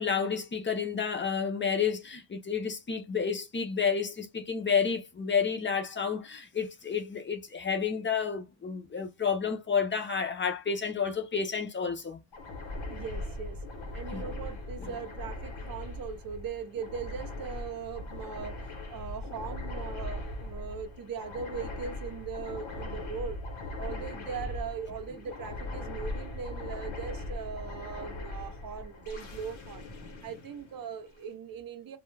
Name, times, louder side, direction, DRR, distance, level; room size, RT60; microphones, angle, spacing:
voice 1, 0.0-12.2 14.1-14.3 14.8-14.9, left 6 dB, 25° left, 0.5 m, -30 dB
sound 1, 12.3-31.2, left 2 dB, 90° left, 0.9 m, -40 dB
voice 2, 12.9-13.6 13.9-18.6 18.9-23.4 23.8-29.9 30.2-32.0, right 6 dB, 50° right, 0.6 m, -39 dB
2.3 x 2.1 x 3.1 m
wide cardioid pair, 125°, 45 cm